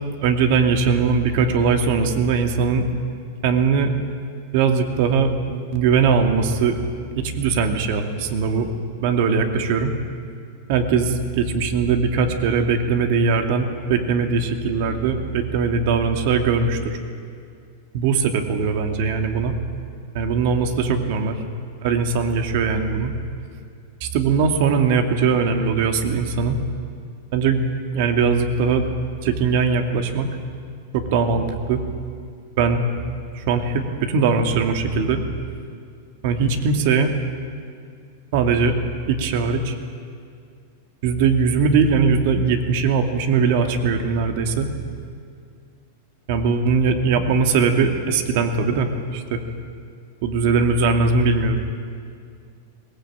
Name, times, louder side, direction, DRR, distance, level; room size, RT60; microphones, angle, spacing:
voice 1, 0.2-2.9 3.4-3.9 4.5-6.8 7.2-8.7 9.0-9.9 10.7-17.0 17.9-19.5 20.1-21.4 21.8-23.1 24.0-26.6 27.3-27.7 27.9-28.9 29.2-30.3 30.9-31.8 32.6-33.0 33.3-35.2 36.2-37.1 38.3-38.8 39.1-39.7 41.0-44.7 46.3-49.4 50.2-51.6, right 5 dB, 60° right, 5 dB, 2.5 m, -20 dB
21.5 x 19.0 x 8.9 m, 2.2 s
hypercardioid pair, 130°, 0 cm